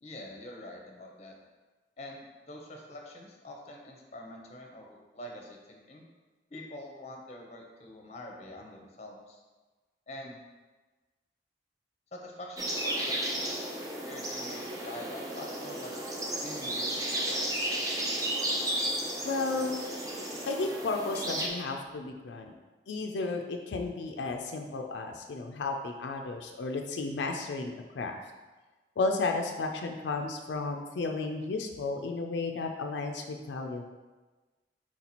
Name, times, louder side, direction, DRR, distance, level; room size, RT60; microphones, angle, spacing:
voice 1, 0.0-1.3 2.0-6.0 6.5-9.4 10.1-10.4 12.1-13.6 13.9-15.9 16.4-17.8, left 1 dB, 40° left, 1 dB, 0.7 m, -45 dB
sound 1, 12.6-21.5, right 1 dB, 20° right, 0.5 m, -33 dB
voice 2, 19.2-19.7 20.5-22.5 22.9-28.2 29.0-33.8, left 3 dB, 90° left, 3 dB, 0.4 m, -33 dB
4.5 x 2.9 x 4.1 m, 1.3 s
head